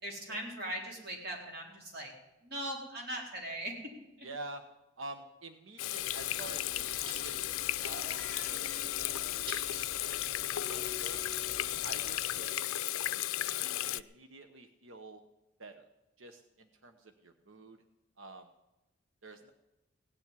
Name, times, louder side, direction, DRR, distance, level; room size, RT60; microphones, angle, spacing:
voice 1, 0.0-2.1 2.4-3.7, right 1 dB, 50° right, -1 dB, 4.0 m, -39 dB
voice 2, 4.2-4.6 5.0-7.5 7.8-9.9 10.2-11.2 11.8-12.8 13.6-15.2 15.6-15.9 16.2-17.8 18.2-18.5 19.2-19.5, right 2 dB, 75° right, 7 dB, 1.0 m, -48 dB
Water tap faucet / Sink (filling or washing), 5.8-14.0, left 14 dB, 90° left, 0.4 m, -35 dB
sound 1, 6.0-12.4, left 2 dB, 25° right, 4.4 m, -47 dB
17.0 x 7.4 x 9.7 m, 0.99 s
head